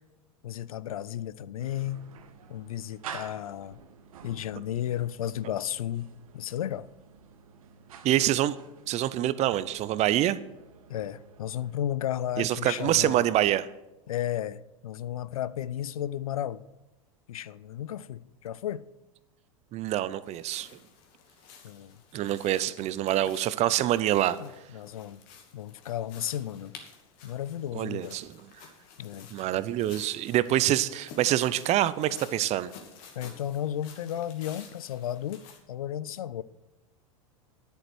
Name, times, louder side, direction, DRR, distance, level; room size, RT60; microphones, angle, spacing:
voice 1, 0.4-2.0 2.5-3.8 4.2-6.9 10.9-13.3 14.1-16.6 17.3-18.8 21.6-22.0 24.4-25.2 25.5-26.8 27.2-28.2 29.0-29.3 33.2-35.4 35.7-36.4, left 11 dB, 75° left, 0.5 m, -34 dB
sound 1, 1.6-11.8, right 7 dB, 75° right, 1.3 m, -49 dB
voice 2, 8.0-8.6 8.9-10.4 12.4-13.7 19.7-20.7 22.1-24.4 27.7-28.3 29.3-32.7, right 13 dB, 35° right, 0.7 m, -26 dB
sound 2, 20.2-35.6, left 6 dB, 50° left, 2.4 m, -52 dB
10.5 x 8.1 x 6.2 m
hypercardioid pair, 95°, 18 cm